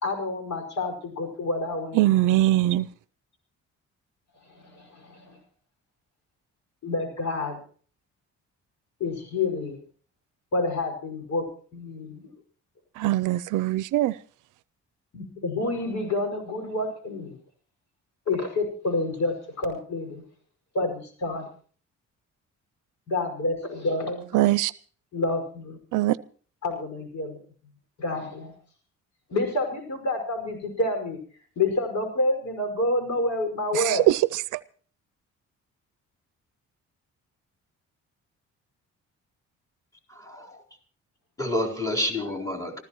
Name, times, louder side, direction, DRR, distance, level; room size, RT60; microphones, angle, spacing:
voice 1, 0.0-2.0 4.5-5.4 6.8-7.6 9.0-9.8 10.5-11.4 11.7-12.3 15.1-17.4 18.3-20.2 20.7-21.5 23.1-24.3 25.1-25.8 26.6-27.4 28.0-28.5 29.3-31.2 31.6-34.0, left 2 dB, 65° left, 5 dB, 5.6 m, -28 dB
voice 2, 1.9-2.9 13.0-14.2 24.3-24.7 25.9-26.2 33.7-34.6, right 15 dB, 85° right, 17 dB, 0.6 m, -22 dB
voice 3, 40.1-40.6 41.4-42.8, left 1 dB, 10° left, 2 dB, 4.1 m, -29 dB
27.0 x 14.5 x 3.1 m, 0.43 s
cardioid pair, 90°, 30 cm